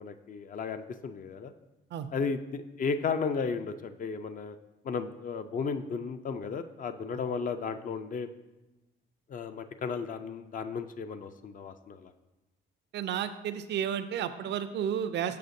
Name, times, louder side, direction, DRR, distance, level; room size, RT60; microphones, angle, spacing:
voice 1, 0.0-1.5 2.1-4.6 4.8-8.3 9.3-12.1, left 5 dB, 45° left, 9 dB, 0.4 m, -34 dB
voice 2, 12.9-15.4, right 9 dB, 60° right, 10 dB, 0.4 m, -32 dB
6.6 x 5.6 x 2.6 m, 1.0 s
cardioid pair, 90°, 20 cm